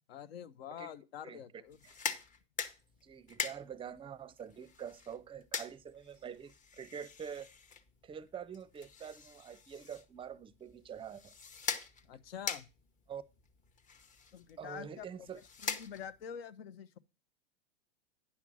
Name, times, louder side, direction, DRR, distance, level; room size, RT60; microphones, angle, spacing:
voice 1, 0.1-1.8 12.0-12.7 14.3-15.0 15.6-17.0, left 8 dB, 70° left, 1.0 m, -46 dB
sound 1, 1.7-16.3, left 5 dB, 25° left, 1.0 m, -44 dB
voice 2, 3.0-7.5 8.0-11.3 13.1-13.2 14.6-15.4, right 8 dB, 15° right, 0.6 m, -46 dB
9.8 x 5.9 x 6.1 m
hypercardioid pair, 100°, 32 cm